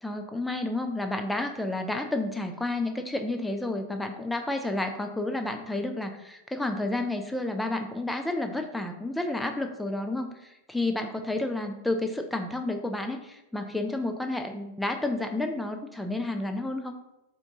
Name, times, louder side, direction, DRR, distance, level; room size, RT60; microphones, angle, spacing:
voice 1, 0.0-16.9, left 2 dB, 5° left, 5 dB, 0.5 m, -31 dB
4.5 x 3.8 x 2.6 m, 0.91 s
figure-of-eight pair, 90°, 0 cm